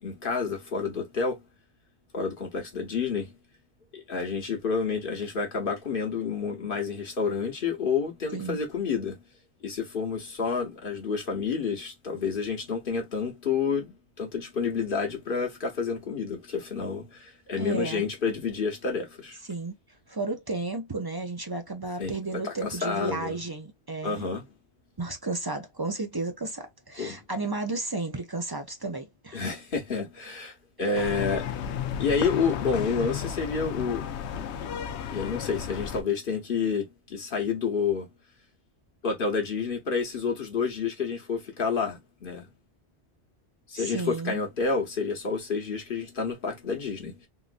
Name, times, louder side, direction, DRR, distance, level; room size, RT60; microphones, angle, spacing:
voice 1, 0.0-1.4 2.1-3.3 3.9-9.2 9.6-19.4 22.0-23.4 24.0-24.4 27.0-27.2 29.3-31.5 32.0-34.1 34.5-34.7 35.1-38.1 39.0-42.5 43.7-47.2, left 5 dB, 55° left, 1.1 m, -29 dB
voice 2, 17.6-18.1 19.5-19.7 20.1-24.2 25.0-29.4 30.9-31.1 43.7-44.4, right 3 dB, 30° right, 0.4 m, -33 dB
sound 1, 30.9-36.0, left 9 dB, 80° left, 0.8 m, -33 dB
3.7 x 2.5 x 2.5 m
omnidirectional pair, 1.2 m